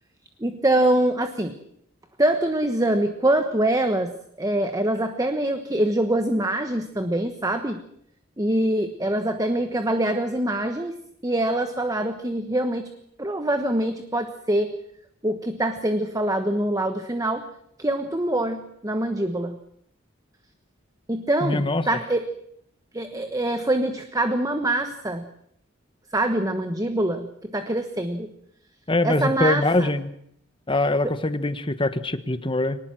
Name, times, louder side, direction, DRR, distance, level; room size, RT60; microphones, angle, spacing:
voice 1, 0.4-1.6 2.2-4.1 4.4-7.8 8.4-10.9 11.2-12.9 13.2-14.7 15.2-17.5 17.8-19.6 21.1-22.2 22.9-25.3 26.1-28.3 29.0-29.9 31.0-31.1, right 1 dB, 15° right, 8 dB, 1.2 m, -24 dB
voice 2, 21.4-21.9 28.9-30.1 30.7-32.8, left 2 dB, 25° left, 11 dB, 1.3 m, -23 dB
23.5 x 19.5 x 7.6 m, 0.69 s
head